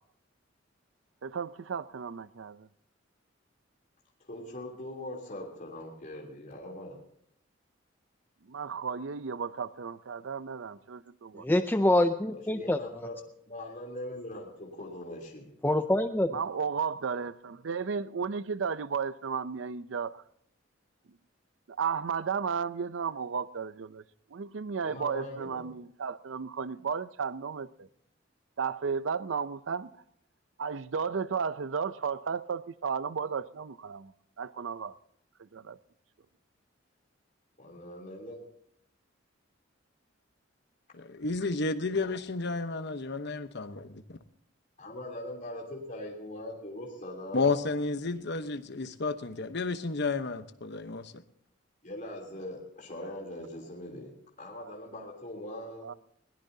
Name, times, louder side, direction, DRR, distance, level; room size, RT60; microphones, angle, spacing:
voice 1, 1.2-2.7 8.5-11.5 16.3-20.2 21.7-24.0 24.3-27.9 28.6-29.9 30.6-34.1 34.4-34.9 35.5-35.8 54.6-54.7 55.8-55.9, right 6 dB, 80° right, 0.5 m, -34 dB
voice 2, 4.2-7.0 12.3-13.2 13.5-15.5 24.8-25.7 37.6-38.4 44.8-47.6 51.8-54.1 54.4-55.9, left 1 dB, 40° left, 3.2 m, -41 dB
voice 3, 11.4-12.8 15.6-16.4, left 1 dB, 10° left, 0.5 m, -25 dB
voice 4, 40.9-44.2 47.3-51.1, left 3 dB, 60° left, 1.0 m, -32 dB
21.5 x 17.5 x 2.8 m
head